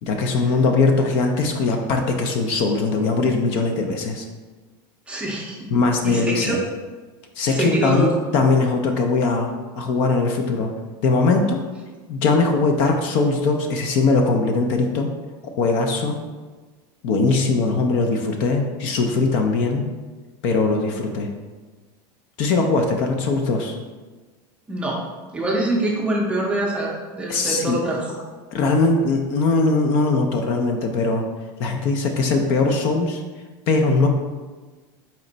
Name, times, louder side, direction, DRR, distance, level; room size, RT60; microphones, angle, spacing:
voice 1, 0.0-4.3 5.7-6.6 7.4-10.7 11.0-11.6 12.1-15.1 15.6-16.2 17.0-19.9 20.4-21.3 22.4-23.7 27.3-27.8 28.5-31.2 31.6-33.2 33.7-34.1, left 3 dB, 50° left, 4 dB, 0.5 m, -20 dB
voice 2, 5.1-5.6 6.0-6.6 7.5-8.1 24.7-25.0 25.3-28.0, right 1 dB, 10° right, -2 dB, 0.6 m, -24 dB
4.3 x 3.1 x 3.8 m, 1.3 s
cardioid pair, 170°, 12 cm